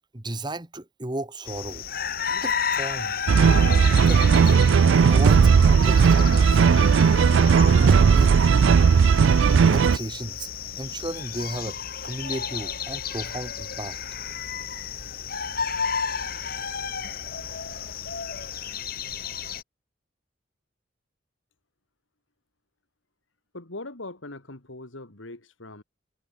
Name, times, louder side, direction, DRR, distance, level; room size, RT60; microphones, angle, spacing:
voice 1, 0.1-1.8 2.3-3.2 3.9-4.7 5.0-6.6 7.8-8.4 9.5-10.5 10.8-14.0, right 1 dB, 20° right, 1.4 m, -34 dB
sound 1, 1.4-19.6, left 7 dB, 50° left, 2.2 m, -32 dB
sound 2, 3.3-10.0, right 6 dB, 75° right, 0.4 m, -17 dB
voice 2, 23.5-25.8, left 2 dB, 85° left, 3.1 m, -40 dB
head